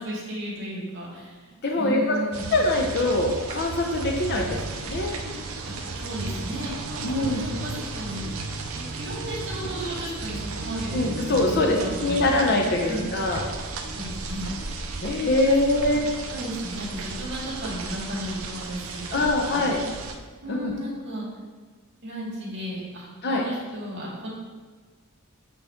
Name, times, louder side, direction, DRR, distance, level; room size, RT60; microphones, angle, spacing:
voice 1, 0.0-2.5 5.6-5.7 6.0-8.5 8.7-12.3 12.9-13.1 13.9-14.5 15.5-15.6 15.9-19.3 19.5-19.9 20.4-21.3 22.0-24.3, equal, 60° right, -5 dB, 1.9 m, -35 dB
voice 2, 1.6-2.2 2.5-5.1 7.0-7.5 10.9-13.4 15.0-16.0 19.1-19.8 20.5-20.7 23.2-23.4, left 2 dB, 50° left, 0 dB, 0.7 m, -23 dB
sound 1, 2.3-20.1, right 3 dB, 80° right, 0.6 m, -34 dB
7.7 x 4.1 x 3.6 m, 1.4 s
head